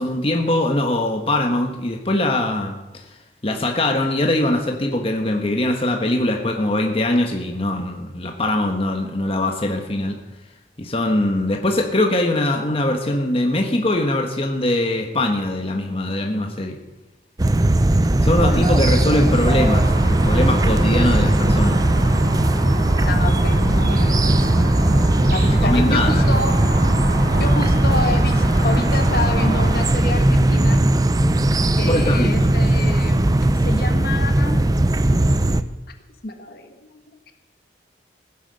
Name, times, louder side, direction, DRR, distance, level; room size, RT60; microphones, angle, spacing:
voice 1, 0.0-3.0 3.4-10.2 10.8-16.8 18.2-19.8 20.3-21.8 25.5-26.2 31.9-32.5, left 1 dB, 35° left, 2 dB, 1.3 m, -22 dB
sound 1, 17.4-35.6, right 1 dB, 20° right, 0.5 m, -18 dB
voice 2, 18.5-19.1 23.0-24.7 25.3-26.6 27.4-30.8 31.8-33.2 33.6-34.6 36.2-37.3, left 2 dB, 55° left, 6 dB, 1.5 m, -29 dB
sound 2, 19.4-29.8, right 1 dB, 60° right, 4.9 m, -27 dB
17.0 x 10.0 x 6.5 m, 1.0 s
head